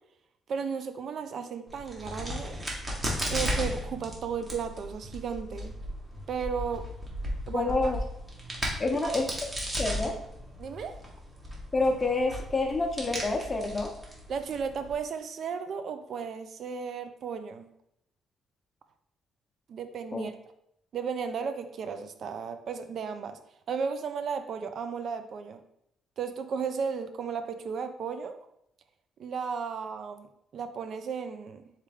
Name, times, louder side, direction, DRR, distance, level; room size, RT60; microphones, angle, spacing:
voice 1, 0.5-2.6 3.3-5.7 6.3-6.9 7.5-7.9 9.0-9.1 10.6-11.0 14.3-17.7 19.7-20.3 20.9-23.4 23.7-25.6 26.2-28.4 29.2-31.7, right 6 dB, 60° right, 9 dB, 0.4 m, -34 dB
Crack, 1.7-14.9, equal, 25° right, 1.3 m, -36 dB
voice 2, 7.5-8.0 8.8-9.3 9.8-10.1 11.7-13.9 20.1-20.3, left 3 dB, 25° left, 3 dB, 0.8 m, -28 dB
4.2 x 3.4 x 3.5 m, 0.77 s
cardioid pair, 90°, 0 cm